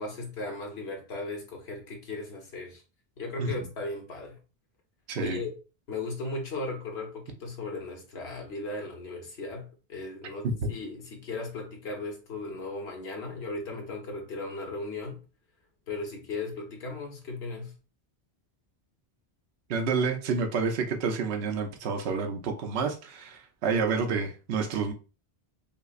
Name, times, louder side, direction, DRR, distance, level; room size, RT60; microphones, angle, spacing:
voice 1, 0.0-2.8 3.2-4.4 5.2-5.6 5.9-15.2 15.9-17.8, left 3 dB, 80° left, 1.3 m, -37 dB
voice 2, 5.1-5.4 10.4-10.7 19.7-24.9, right 4 dB, 80° right, 0.9 m, -29 dB
5.4 x 2.0 x 2.4 m
omnidirectional pair, 1.1 m